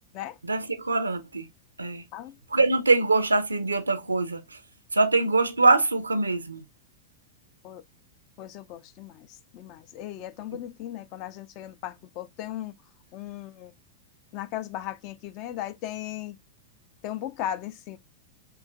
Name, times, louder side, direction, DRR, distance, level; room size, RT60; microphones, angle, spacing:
voice 1, 0.4-1.5 1.8-2.0 2.5-4.4 4.9-6.6, right 3 dB, 80° right, 0.5 m, -23 dB
voice 2, 8.4-12.7 13.1-13.7 14.3-16.4 17.0-18.0, left 12 dB, 40° left, 0.5 m, -37 dB
4.5 x 3.2 x 2.2 m
figure-of-eight pair, 90°, 0 cm